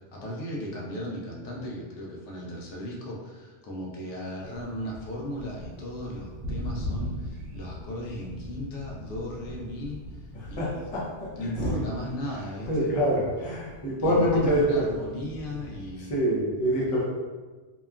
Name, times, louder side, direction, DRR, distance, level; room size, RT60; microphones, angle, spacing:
voice 1, 0.1-10.2 10.5-10.9 11.3-12.9 14.0-16.2, left 1 dB, 80° left, -3 dB, 0.9 m, -36 dB
Thunder, 4.4-16.0, equal, 75° right, 0.9 m, -40 dB
voice 2, 10.3-11.0 11.6-11.8 12.6-14.8 16.0-17.0, equal, 40° left, -6 dB, 0.6 m, -25 dB
2.8 x 2.2 x 2.3 m, 1.3 s
omnidirectional pair, 1.2 m